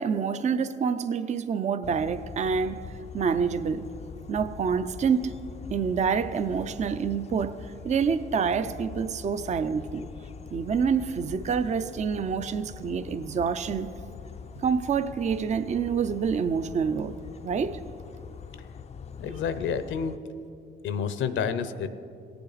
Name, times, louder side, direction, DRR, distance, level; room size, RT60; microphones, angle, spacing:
voice 1, 0.0-2.8 3.1-3.9 4.3-5.3 5.7-7.5 7.8-10.1 10.5-13.9 14.6-17.2 17.4-17.8, right 6 dB, 35° right, 0.5 m, -27 dB
sound 1, 1.8-20.2, left 6 dB, 35° left, 0.4 m, -43 dB
voice 2, 19.2-20.2 20.8-21.9, left 7 dB, 75° left, 0.7 m, -29 dB
18.0 x 6.9 x 4.0 m
cardioid pair, 90°, 20 cm